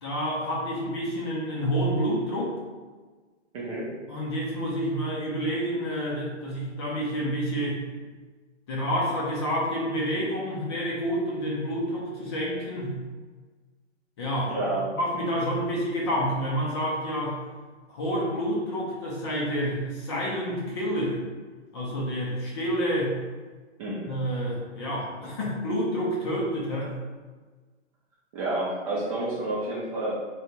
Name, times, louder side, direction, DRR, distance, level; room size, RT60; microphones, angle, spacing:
voice 1, 0.0-2.6 4.1-7.8 8.7-13.0 14.2-14.5 14.9-17.4 17.9-21.2 21.7-23.2 24.1-26.9, equal, 25° left, -5 dB, 0.5 m, -28 dB
voice 2, 3.5-3.9 14.5-14.8 23.8-24.1 28.3-30.1, right 2 dB, 30° right, -7 dB, 0.6 m, -29 dB
3.5 x 2.2 x 2.8 m, 1.4 s
hypercardioid pair, 135°, 36 cm